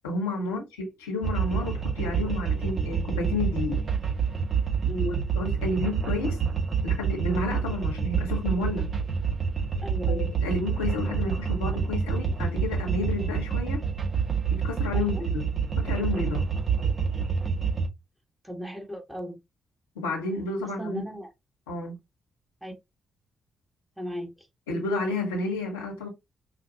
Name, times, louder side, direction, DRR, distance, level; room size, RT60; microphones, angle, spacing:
voice 1, 0.0-3.8 5.0-6.4 6.8-8.9 10.0-13.8 14.5-15.5 15.8-16.4 19.9-21.0 21.7-21.9 24.7-26.1, left 3 dB, 90° left, 1.4 m, -31 dB
sound 1, 1.2-17.9, right 6 dB, 45° right, 2.0 m, -27 dB
voice 2, 4.8-5.3 9.8-10.3 14.9-15.2 18.4-19.4 20.6-21.3 22.6-22.7 24.0-24.5, equal, 10° right, 1.8 m, -36 dB
5.7 x 2.5 x 2.9 m
hypercardioid pair, 40°, 0 cm